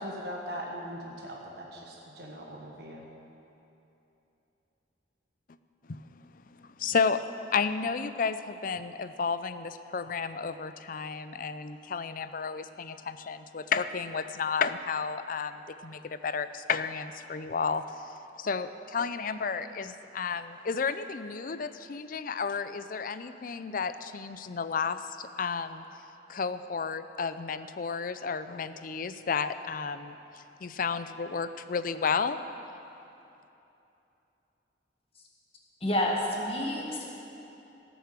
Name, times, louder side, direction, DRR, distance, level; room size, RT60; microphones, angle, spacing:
voice 1, 0.0-3.1, equal, 60° right, -1 dB, 1.5 m, -40 dB
voice 2, 6.5-7.3 7.5-25.8 26.3-32.4, left 5 dB, 50° left, 12 dB, 0.5 m, -32 dB
voice 3, 35.8-37.0, left 1 dB, 30° left, -1 dB, 1.8 m, -29 dB
17.0 x 7.0 x 7.4 m, 2.9 s
head